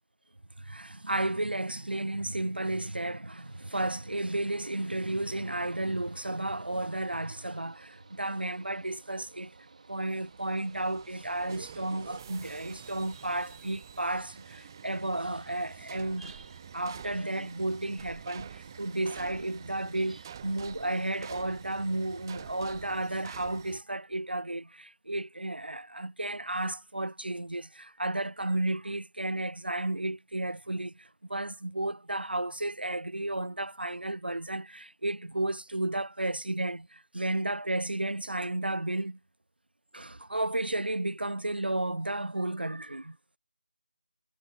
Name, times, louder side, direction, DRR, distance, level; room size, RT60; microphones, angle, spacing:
voice 1, 0.6-9.5 9.9-39.2 39.9-43.2, right 1 dB, 90° right, 0.4 m, -33 dB
Mechanical fan, 3.4-23.0, right 4 dB, 50° right, 2.6 m, -55 dB
sound 1, 10.2-23.8, right 8 dB, 25° right, 0.8 m, -48 dB
figure-of-eight pair, 160°, 5 cm